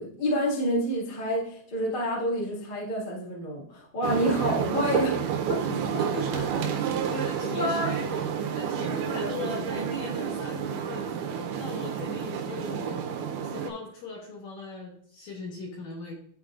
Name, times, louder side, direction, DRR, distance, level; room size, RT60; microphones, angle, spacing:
voice 1, 0.0-5.2 5.5-5.6 6.3-6.4 7.4-8.2, equal, 45° left, -4 dB, 0.6 m, -28 dB
sound 1, 4.0-13.7, right 7 dB, 85° right, 1.8 m, -30 dB
voice 2, 6.0-6.3 6.8-8.1 8.4-11.3 11.6-13.0 13.4-16.1, left 3 dB, 65° left, -1 dB, 2.0 m, -39 dB
11.5 x 4.2 x 2.4 m, 0.63 s
omnidirectional pair, 4.5 m